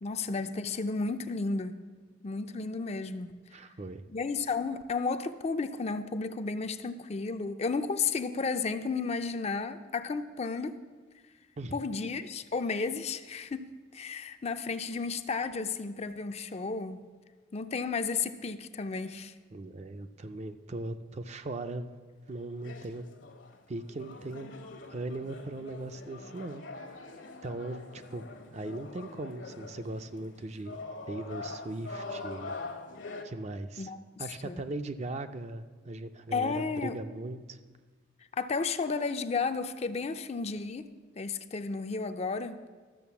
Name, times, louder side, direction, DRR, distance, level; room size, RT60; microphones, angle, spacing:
voice 1, 0.0-1.7 2.2-3.3 4.1-10.8 11.7-13.7 13.9-17.1 17.5-19.3 33.8-34.7 36.3-37.0 38.3-40.8 41.2-42.6, left 4 dB, 35° left, 10 dB, 0.4 m, -33 dB
voice 2, 3.5-4.0 11.6-11.8 19.5-21.9 22.3-23.0 23.7-26.6 27.4-30.8 31.1-32.5 33.2-33.9 34.2-37.6, right 2 dB, 35° right, 9 dB, 0.4 m, -39 dB
sound 1, 22.3-33.2, left 3 dB, 70° left, 1.1 m, -44 dB
12.5 x 6.7 x 7.0 m, 1.4 s
head